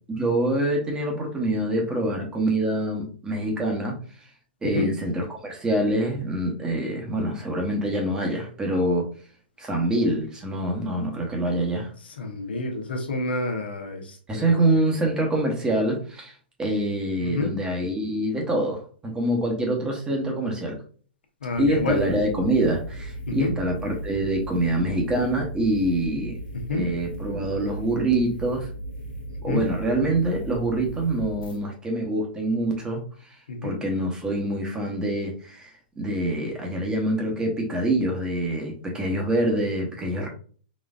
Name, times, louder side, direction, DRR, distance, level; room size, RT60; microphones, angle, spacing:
voice 1, 0.1-4.0 4.6-9.0 9.6-11.9 14.3-16.3 16.6-20.8 21.6-26.4 26.7-28.7 29.4-33.0 33.6-35.7 36.0-40.3, right 1 dB, 15° right, 1 dB, 1.0 m, -25 dB
voice 2, 12.2-14.8 17.2-17.5 21.4-22.0 23.3-23.5 26.7-26.8 29.5-29.6 33.5-33.8, left 2 dB, 85° left, 2 dB, 1.0 m, -28 dB
sound 1, 21.5-31.6, right 1 dB, 60° left, 1.3 m, -36 dB
4.1 x 2.5 x 2.4 m, 0.42 s
hypercardioid pair, 125°, 5 cm